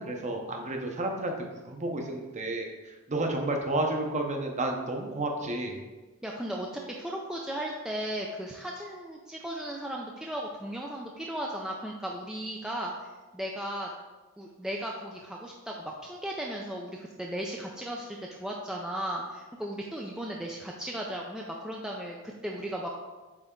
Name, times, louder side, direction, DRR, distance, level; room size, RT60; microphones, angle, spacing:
voice 1, 0.0-5.8, right 2 dB, 30° right, 2 dB, 0.8 m, -31 dB
voice 2, 6.2-6.7 7.0-13.9 14.4-22.9, right 1 dB, 5° right, -2 dB, 0.4 m, -36 dB
8.1 x 3.4 x 3.7 m, 1.2 s
head